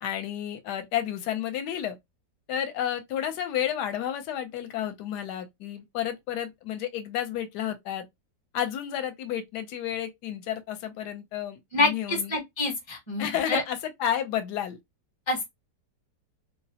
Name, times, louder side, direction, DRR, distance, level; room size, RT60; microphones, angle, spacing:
voice 1, 0.0-2.0 2.5-8.0 8.5-12.3 13.2-14.8, left 10 dB, 75° left, 1.1 m, -31 dB
voice 2, 11.7-13.6 15.3-15.4, left 2 dB, 25° left, 0.6 m, -27 dB
2.9 x 2.0 x 2.7 m
omnidirectional pair, 1.9 m